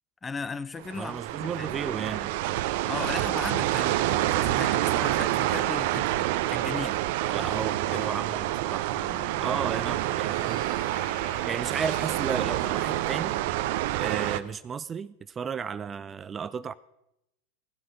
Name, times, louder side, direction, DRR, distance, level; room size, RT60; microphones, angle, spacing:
voice 1, 0.2-1.7 2.9-7.0 7.3-7.6 7.8-8.1, left 4 dB, 15° left, 0.6 m, -37 dB
sound 1, 0.8-14.4, right 15 dB, 55° right, 0.7 m, -28 dB
voice 2, 0.9-2.4 7.3-8.9 9.4-10.7 11.4-13.4 13.9-16.7, right 6 dB, 25° right, 0.5 m, -33 dB
sound 2, 8.6-13.4, left 7 dB, 50° left, 2.2 m, -48 dB
17.0 x 12.5 x 5.2 m
figure-of-eight pair, 90°, 0 cm